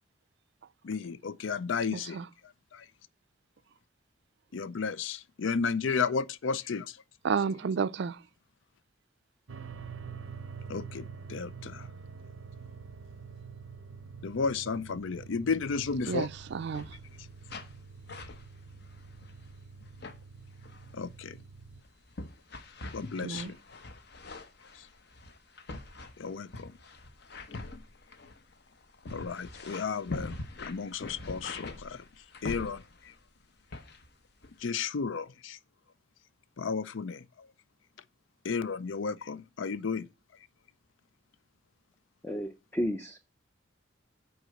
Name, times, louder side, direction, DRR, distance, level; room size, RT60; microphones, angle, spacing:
voice 1, 0.8-2.2 2.7-2.9 4.5-7.0 10.7-11.9 14.2-16.3 20.9-21.4 22.9-23.6 26.2-26.7 29.0-32.0 32.4-33.1 34.6-35.6 36.6-37.5 38.4-40.1, left 5 dB, 70° left, 0.5 m, -33 dB
voice 2, 1.9-2.3 7.2-8.2 16.1-17.0 23.2-23.5, right 5 dB, 60° right, 0.4 m, -31 dB
sound 1, 9.5-21.8, right 5 dB, 90° right, 0.7 m, -46 dB
sound 2, 15.9-16.3 16.5-17.2 17.5-17.8 18.1-19.5 19.8-20.2 20.6-21.0 21.6-33.2 33.7-34.1 34.4-34.7, left 3 dB, 55° left, 1.0 m, -44 dB
voice 3, 42.2-43.2, equal, 10° left, 0.5 m, -32 dB
7.9 x 4.8 x 6.3 m
head